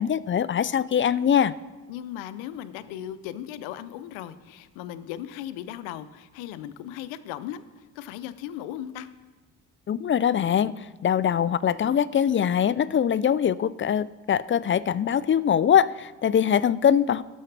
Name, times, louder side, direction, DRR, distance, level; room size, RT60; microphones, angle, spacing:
voice 1, 0.0-1.5 9.9-17.2, left 8 dB, 25° left, 18 dB, 0.4 m, -22 dB
voice 2, 1.9-9.1, left 11 dB, 75° left, 14 dB, 0.7 m, -37 dB
18.5 x 6.4 x 3.4 m, 1.2 s
hypercardioid pair, 50°, 47 cm